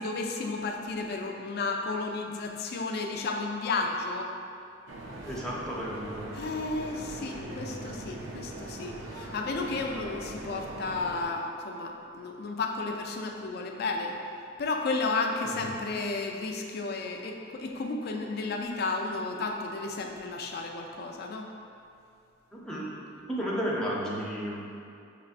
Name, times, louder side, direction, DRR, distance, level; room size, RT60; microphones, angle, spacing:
voice 1, 0.0-4.3 6.3-14.2 14.6-21.5, left 3 dB, 55° left, 2 dB, 0.4 m, -33 dB
sound 1, 4.9-11.2, right 1 dB, 85° right, 0.6 m, -41 dB
voice 2, 5.3-6.3 15.4-15.7 22.5-22.9 23.3-24.6, equal, 5° left, -6 dB, 0.6 m, -33 dB
5.9 x 3.0 x 2.5 m, 2.5 s
head